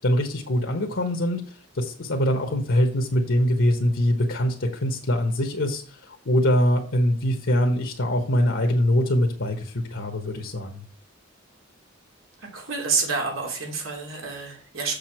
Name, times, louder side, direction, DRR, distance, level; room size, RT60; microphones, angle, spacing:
voice 1, 0.0-1.4 1.7-10.8, equal, 70° left, 3 dB, 1.3 m, -23 dB
voice 2, 12.4-14.9, right 4 dB, 90° right, 0 dB, 3.0 m, -28 dB
7.1 x 6.7 x 4.4 m, 0.42 s
head